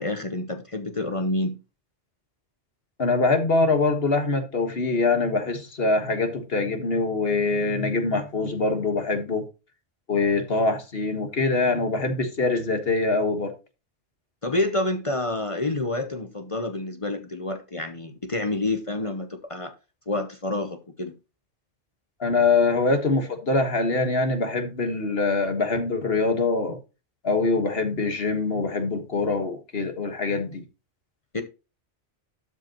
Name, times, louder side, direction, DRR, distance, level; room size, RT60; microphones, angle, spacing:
voice 1, 0.0-1.6 14.4-19.7 20.1-21.1 31.3-31.4, left 2 dB, 30° left, 0.9 m, -28 dB
voice 2, 3.0-9.4 10.1-13.5 22.2-26.8 27.2-30.6, left 3 dB, 55° left, 1.7 m, -24 dB
12.0 x 5.3 x 3.0 m
omnidirectional pair, 1.2 m